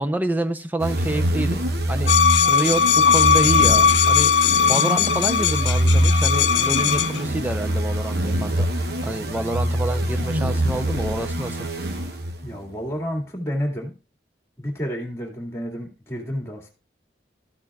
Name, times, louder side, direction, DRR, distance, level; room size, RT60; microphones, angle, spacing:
voice 1, 0.0-1.6 1.9-4.3 4.7-8.7 9.0-11.6, right 1 dB, 10° right, 9 dB, 0.6 m, -27 dB
sound 1, 0.8-12.6, equal, 60° right, 1.1 m, -24 dB
sound 2, 2.1-7.2, left 7 dB, 80° left, 0.6 m, -18 dB
voice 2, 12.4-14.0 14.6-16.7, equal, 15° left, 1 dB, 2.2 m, -30 dB
13.5 x 8.7 x 2.4 m, 0.32 s
head